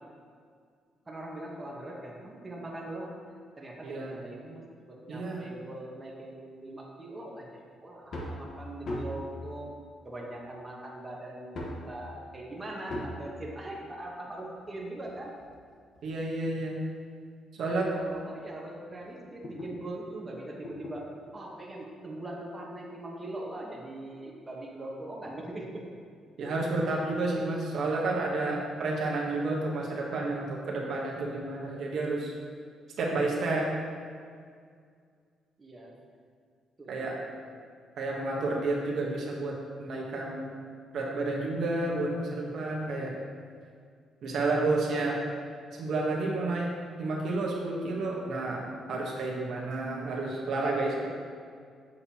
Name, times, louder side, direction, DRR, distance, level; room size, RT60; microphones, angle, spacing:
voice 1, 1.1-3.2 3.6-9.7 10.0-15.3 17.6-25.8 35.6-36.0 36.8-37.5, right 1 dB, 20° right, -2 dB, 1.2 m, -41 dB
voice 2, 5.1-5.4 16.0-16.8 17.6-17.9 26.4-32.3 33.0-33.7 36.9-37.2 38.0-40.5 40.9-43.1 44.2-45.2 45.8-46.7 47.0-51.1, right 2 dB, 65° right, -2 dB, 1.1 m, -30 dB
sound 1, 8.0-8.4 8.8-9.3 10.3-10.4 11.5-11.9 12.9-13.2 14.6-16.2 16.9-17.0 17.6-17.7 18.0-18.1 18.5-19.8 20.6-21.0 22.3-22.4, left 1 dB, 60° left, 1.2 m, -39 dB
7.1 x 6.6 x 2.9 m, 2.1 s
cardioid pair, 90°, 0 cm